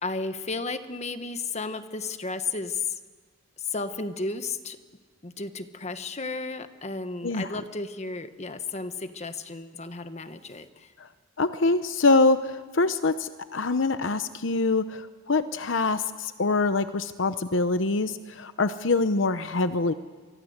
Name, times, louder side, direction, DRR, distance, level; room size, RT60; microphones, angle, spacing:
voice 1, 0.0-3.0 3.6-4.8 5.2-10.9, left 3 dB, 35° left, 9 dB, 1.3 m, -33 dB
voice 2, 11.4-19.9, left 3 dB, 70° left, 11 dB, 0.9 m, -24 dB
29.0 x 24.0 x 8.1 m, 1.5 s
head